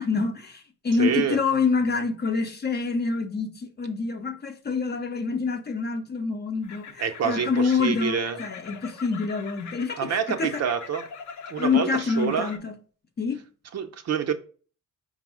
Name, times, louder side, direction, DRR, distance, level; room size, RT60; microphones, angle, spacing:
voice 1, 0.0-10.6 11.6-12.7 13.2-13.4, left 4 dB, 35° left, 0.7 m, -26 dB
voice 2, 1.0-1.4 7.0-8.4 10.0-11.1 11.5-12.5 13.7-14.3, right 7 dB, 60° right, 0.6 m, -27 dB
sound 1, 6.6-12.6, left 6 dB, 70° left, 0.6 m, -42 dB
5.2 x 2.0 x 4.7 m
cardioid pair, 90°, 30 cm